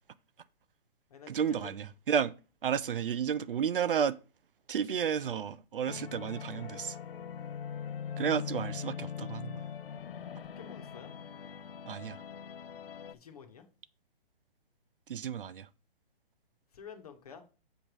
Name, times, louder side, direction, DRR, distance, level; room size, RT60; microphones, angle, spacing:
voice 1, 1.3-2.3 2.6-4.2 4.7-7.0 8.2-9.6 11.9-12.2 15.1-15.7, right 8 dB, 65° right, 0.5 m, -32 dB
sound 1, 5.9-13.1, left 7 dB, 65° left, 0.7 m, -41 dB
voice 2, 10.6-11.1 13.1-13.6 16.7-17.4, left 7 dB, 40° left, 1.2 m, -49 dB
7.2 x 3.4 x 6.0 m
hypercardioid pair, 175°, 30 cm